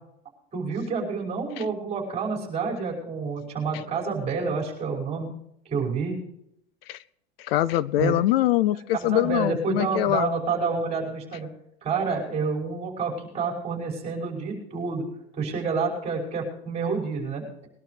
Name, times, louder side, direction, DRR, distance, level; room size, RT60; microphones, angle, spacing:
voice 1, 0.5-5.3 5.7-6.2 7.9-8.1 8.9-11.5 11.8-15.0 15.3-17.4, right 5 dB, 20° right, -2 dB, 5.9 m, -28 dB
voice 2, 7.4-10.3, left 15 dB, 65° left, 19 dB, 0.6 m, -23 dB
22.0 x 12.0 x 3.3 m, 0.74 s
supercardioid pair, 155°, 31 cm